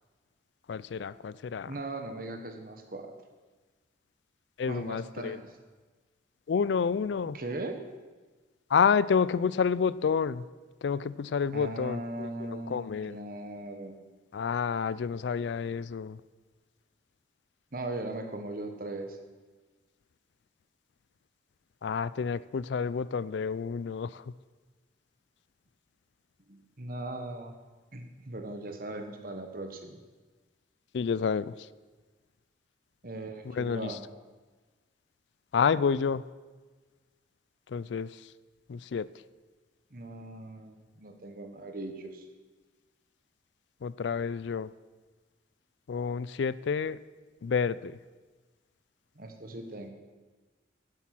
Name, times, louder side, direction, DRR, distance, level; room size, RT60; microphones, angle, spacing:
voice 1, 0.7-1.7 4.6-5.4 6.5-7.4 8.7-10.4 10.8-13.2 14.3-16.2 21.8-24.2 30.9-31.7 33.4-34.0 35.5-36.2 37.7-38.3 38.7-39.1 43.8-44.7 45.9-47.0 47.4-48.0, left 6 dB, 70° left, 18 dB, 0.4 m, -29 dB
voice 2, 1.6-3.1 4.7-5.5 7.3-7.8 11.5-13.9 17.7-19.2 26.5-27.5 27.9-30.0 33.0-34.0 39.9-42.3 49.1-49.9, right 2 dB, 50° right, 5 dB, 1.4 m, -39 dB
12.0 x 9.9 x 6.1 m, 1.3 s
head